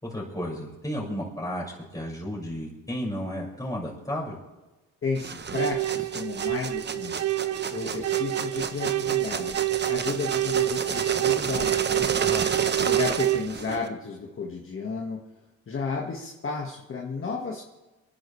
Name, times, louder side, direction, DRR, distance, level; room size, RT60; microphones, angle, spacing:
voice 1, 0.0-4.4 12.2-12.7, equal, 10° left, -4 dB, 6.0 m, -33 dB
voice 2, 5.0-7.4 7.7-9.6 9.9-12.1 12.8-15.2 15.7-17.6, left 4 dB, 45° left, -1 dB, 1.9 m, -33 dB
sound 1, 5.1-13.9, right 5 dB, 35° right, 1.1 m, -31 dB
sound 2, 5.6-13.5, right 17 dB, 65° right, 0.6 m, -27 dB
25.5 x 11.0 x 3.4 m, 1.1 s
cardioid pair, 90°, 30 cm